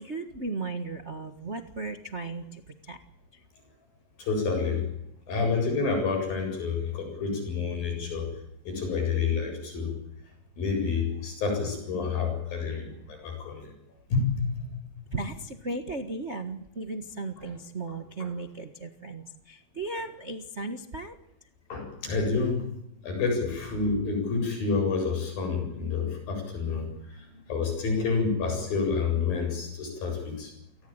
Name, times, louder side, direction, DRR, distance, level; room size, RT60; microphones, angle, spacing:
voice 1, 0.0-3.0 3.3-3.4 15.1-21.1, right 3 dB, 60° right, 6 dB, 0.7 m, -36 dB
voice 2, 4.2-4.9 5.3-8.3 8.7-9.9 10.6-13.7 14.1-14.6 21.7-22.7 23.0-30.5, left 4 dB, 80° left, 4 dB, 9.5 m, -29 dB
29.5 x 19.0 x 8.9 m, 0.80 s
omnidirectional pair, 4.1 m